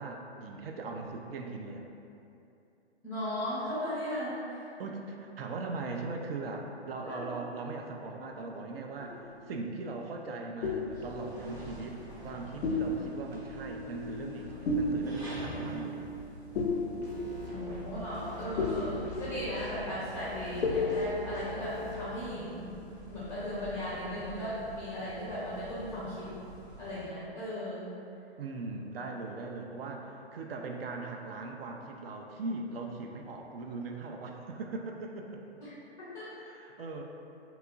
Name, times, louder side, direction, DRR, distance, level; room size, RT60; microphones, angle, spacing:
voice 1, 0.0-1.9 4.8-16.1 28.4-35.4 36.3-37.0, right 3 dB, 60° right, 2 dB, 0.4 m, -40 dB
voice 2, 3.0-4.6 7.0-7.3 17.5-22.7 23.1-26.3 26.8-27.9 35.6-35.7 36.0-36.3, equal, 10° left, -10 dB, 0.5 m, -37 dB
sound 1, 9.0-10.0 10.6-12.3 12.6-22.1, left 2 dB, 90° left, 0.5 m, -35 dB
sound 2, 10.9-27.1, equal, 25° right, 0.7 m, -47 dB
sound 3, 17.0-17.8 18.1-19.8 20.1-22.1, left 3 dB, 90° right, 1.3 m, -45 dB
3.6 x 3.0 x 2.3 m, 2.7 s
hypercardioid pair, 135°, 33 cm